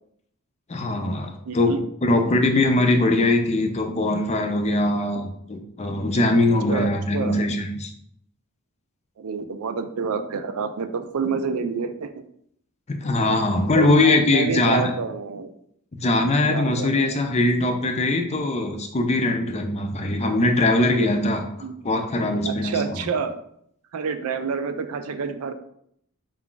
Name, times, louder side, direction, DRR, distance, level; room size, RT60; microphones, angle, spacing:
voice 1, 0.7-1.7 2.0-7.9 12.9-14.9 15.9-21.4 21.8-22.8, left 2 dB, 30° left, 5 dB, 0.4 m, -21 dB
voice 2, 1.5-1.8 6.7-7.4 9.2-12.2 13.7-15.5 16.5-17.2 21.6-21.7 22.4-23.4 23.9-25.5, right 5 dB, 75° right, 9 dB, 0.4 m, -28 dB
4.6 x 2.4 x 3.8 m, 0.69 s
head